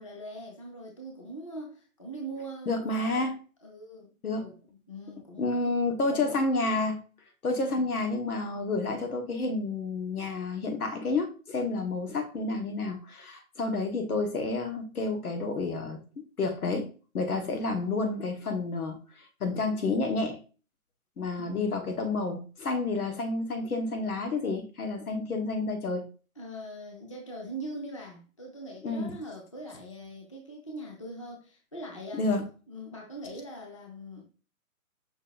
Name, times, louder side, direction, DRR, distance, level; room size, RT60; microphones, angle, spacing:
voice 1, 0.0-3.3 3.6-6.5 21.4-22.0 26.4-32.3 32.7-34.2, right 1 dB, 25° left, 0.4 m, -42 dB
voice 2, 2.7-3.4 4.2-4.5 5.4-7.0 7.4-19.0 19.4-20.4 21.2-26.1 28.8-29.1 32.1-32.4, left 3 dB, 80° left, 1.4 m, -30 dB
5.3 x 2.5 x 3.9 m
hypercardioid pair, 160°, 43 cm